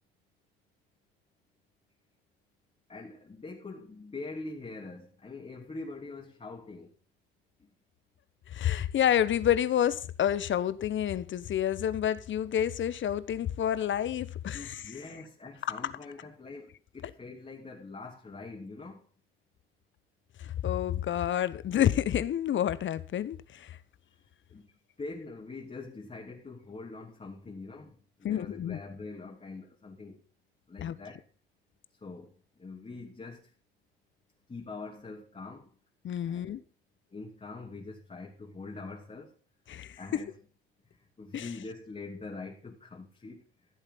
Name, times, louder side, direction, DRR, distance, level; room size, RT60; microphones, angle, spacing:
voice 1, 2.9-6.9 14.5-16.7 16.9-19.0 24.5-24.6 25.0-27.9 28.2-30.1 30.7-31.2 32.0-32.3 32.6-33.4 34.5-35.6 36.3-36.6 37.1-39.3 40.0-40.3 41.2-43.4, left 3 dB, 20° left, 3.0 m, -43 dB
voice 2, 8.5-14.9 15.6-15.9 20.4-23.8 28.2-28.8 30.8-31.0 36.0-36.6 39.7-40.2 41.3-41.5, left 10 dB, 40° left, 1.0 m, -29 dB
15.0 x 8.0 x 5.6 m
hypercardioid pair, 70°, 30 cm